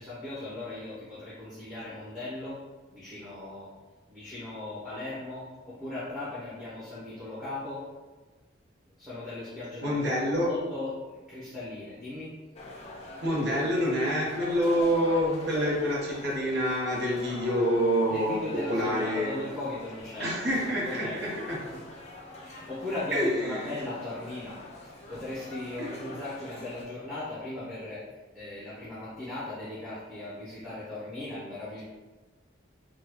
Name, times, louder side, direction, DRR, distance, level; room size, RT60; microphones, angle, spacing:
voice 1, 0.0-2.6 2.9-3.7 4.1-7.8 9.0-10.0 10.4-12.3 15.5-15.8 18.1-20.4 20.8-21.2 22.4-24.6 24.8-28.0 28.3-31.8, left 2 dB, ahead, -11 dB, 0.8 m, -38 dB
voice 2, 9.8-10.5 13.2-18.4 18.7-19.3 20.2-21.6 23.1-23.7 25.8-25.9, equal, 55° right, -5 dB, 0.9 m, -27 dB
sound 1, 12.6-26.9, left 2 dB, 30° left, 0.4 m, -44 dB
3.7 x 2.3 x 2.9 m, 1.3 s
head